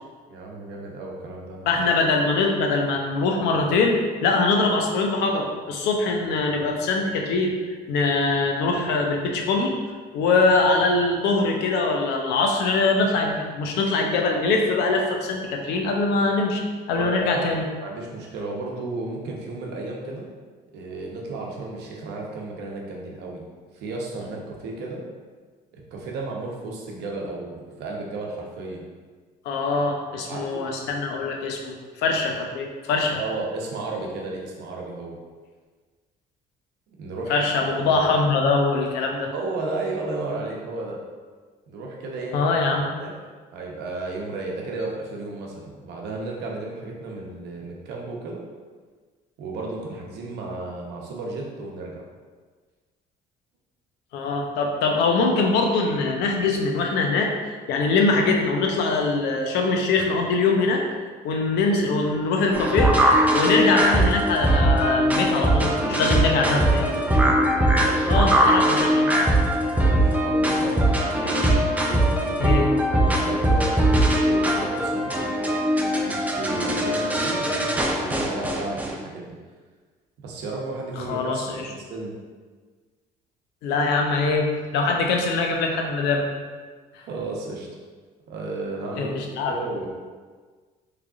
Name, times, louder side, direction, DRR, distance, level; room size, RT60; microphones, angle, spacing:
voice 1, 0.3-1.8 16.9-17.4 17.8-20.3 20.7-23.4 23.7-25.0 25.7-28.8 30.3-30.7 33.2-35.2 36.9-37.5 37.8-38.1 39.3-41.0 41.7-43.1 43.5-48.4 49.4-52.0 63.4-63.6 65.4-66.7 67.6-68.3 68.6-68.9 69.7-71.5 72.9-75.3 75.9-79.4 80.2-82.1 87.0-87.7 88.3-89.2 89.5-89.9, right 2 dB, 80° right, -1 dB, 0.8 m, -33 dB
voice 2, 1.7-9.8 10.1-16.6 16.9-17.6 29.4-33.2 37.3-39.3 42.3-42.9 54.1-57.3 57.7-60.8 61.2-63.0 63.3-65.7 66.0-66.9 68.1-69.1 72.4-72.7 81.1-81.7 83.6-86.3 89.0-89.5, left 3 dB, 85° left, 2 dB, 0.6 m, -23 dB
sound 1, 62.5-78.9, right 1 dB, 10° right, 0.4 m, -21 dB
3.7 x 3.2 x 2.4 m, 1.5 s
cardioid pair, 110°, 17 cm